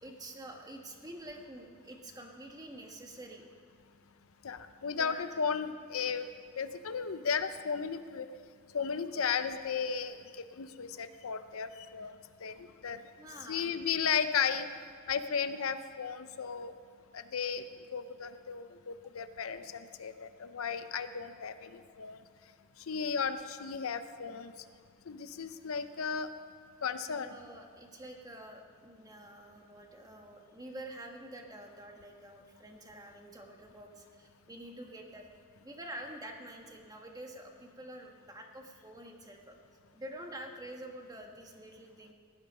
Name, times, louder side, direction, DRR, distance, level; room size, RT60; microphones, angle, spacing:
voice 1, 0.0-3.5 4.9-5.2 13.2-13.7 27.1-35.3 35.6-39.6 39.9-42.1, right 1 dB, 15° right, 2 dB, 1.4 m, -47 dB
voice 2, 4.4-6.3 6.6-8.3 8.7-13.0 13.5-14.7 15.1-16.7 17.1-17.6 17.9-22.2 22.8-24.5 25.1-26.3 26.8-27.3, left 6 dB, 70° left, 10 dB, 0.6 m, -35 dB
18.0 x 11.5 x 5.4 m, 2.1 s
head